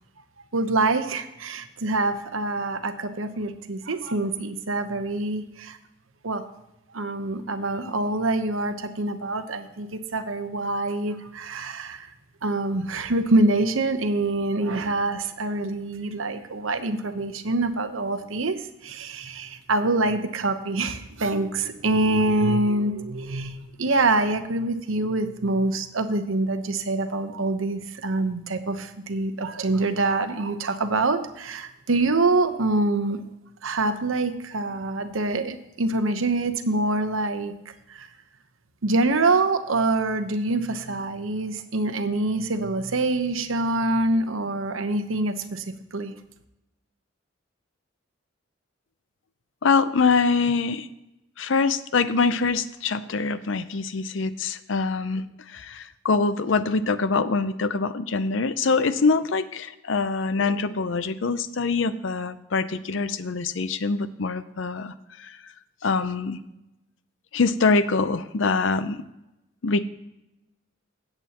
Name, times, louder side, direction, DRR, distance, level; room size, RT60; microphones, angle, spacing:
voice 1, 0.5-5.8 6.2-6.4 6.9-12.1 12.4-33.2 33.6-37.5 37.9-38.1 38.8-45.6 45.9-46.1, right 2 dB, 90° right, 9 dB, 0.9 m, -25 dB
voice 2, 49.6-50.9 51.4-65.4 65.8-66.4 67.3-69.0 69.6-69.8, left 4 dB, 70° left, 13 dB, 0.6 m, -24 dB
16.5 x 8.0 x 2.9 m, 0.92 s
head